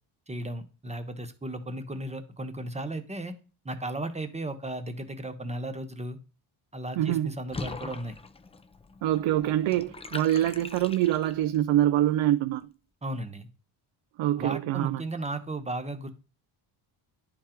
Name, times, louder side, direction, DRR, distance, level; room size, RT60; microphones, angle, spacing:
voice 1, 0.3-3.3 3.6-6.2 6.7-8.2 13.0-13.5 14.4-16.1, right 1 dB, 15° right, 1.0 m, -35 dB
voice 2, 7.0-7.3 9.0-12.6 14.2-15.0, right 13 dB, 70° right, 0.6 m, -25 dB
Water / Bathtub (filling or washing), 7.5-11.6, left 3 dB, 15° left, 0.4 m, -42 dB
10.5 x 3.9 x 4.4 m
cardioid pair, 110°, 47 cm